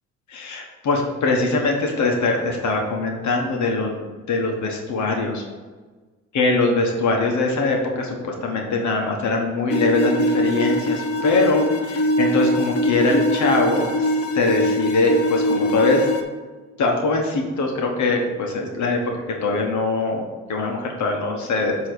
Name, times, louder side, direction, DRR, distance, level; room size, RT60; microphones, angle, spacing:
voice 1, 0.3-5.4 6.3-16.1 16.8-19.0 19.4-21.9, left 3 dB, 70° left, 1 dB, 1.2 m, -22 dB
sound 1, 9.7-16.2, equal, 50° left, 0.9 m, -22 dB
7.7 x 3.1 x 6.2 m, 1.3 s
cardioid pair, 90°, 30 cm